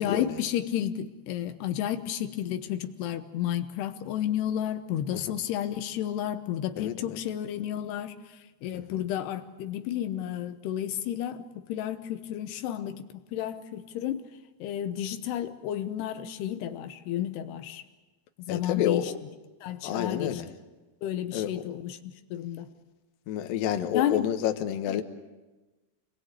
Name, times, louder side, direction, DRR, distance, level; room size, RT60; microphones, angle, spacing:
voice 1, 0.0-13.1 13.3-14.2 14.6-17.8 18.5-19.1 19.6-20.4 21.0-22.7 23.9-24.3 24.9-25.0, left 11 dB, 85° left, 8 dB, 3.1 m, -32 dB
voice 2, 6.8-7.2 18.5-19.1 19.8-20.5 21.3-21.6 23.3-25.0, left 10 dB, 70° left, 6 dB, 2.8 m, -29 dB
27.0 x 21.0 x 8.2 m, 1.2 s
omnidirectional pair, 4.6 m